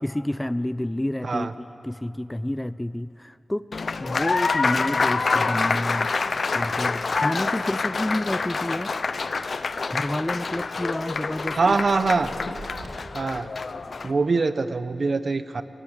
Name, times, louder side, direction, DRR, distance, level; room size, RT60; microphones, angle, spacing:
voice 1, 0.0-3.6 4.0-6.1 6.5-8.9 9.9-11.7 12.4-12.5, left 1 dB, 10° left, 16 dB, 0.4 m, -29 dB
Applause, 3.7-14.1, left 4 dB, 65° left, 0.6 m, -27 dB
sound 1, 11.1-12.9, right 3 dB, 80° right, 3.2 m, -46 dB
voice 2, 11.5-12.3 13.1-13.5 14.0-15.6, right 4 dB, 60° right, 12 dB, 0.7 m, -23 dB
19.0 x 18.0 x 8.0 m, 2.9 s
wide cardioid pair, 80°, 0 cm